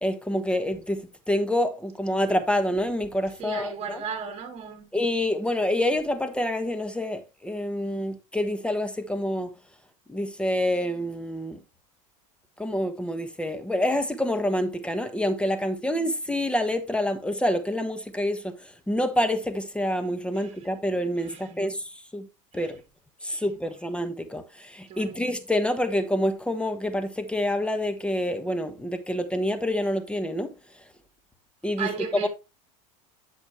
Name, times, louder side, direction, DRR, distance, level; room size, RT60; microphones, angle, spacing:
voice 1, 0.0-4.0 4.9-9.5 10.1-11.6 12.6-18.5 18.9-22.3 22.5-22.8 23.2-30.5 31.6-31.9 32.2-32.3, left 1 dB, 5° left, 1.2 m, -27 dB
voice 2, 3.4-4.9 20.3-20.5 21.2-21.7 22.5-22.7 23.3-23.4 24.9-25.2 31.8-32.3, right 7 dB, 35° right, 3.0 m, -35 dB
11.0 x 6.0 x 3.2 m
supercardioid pair, 105°, 18 cm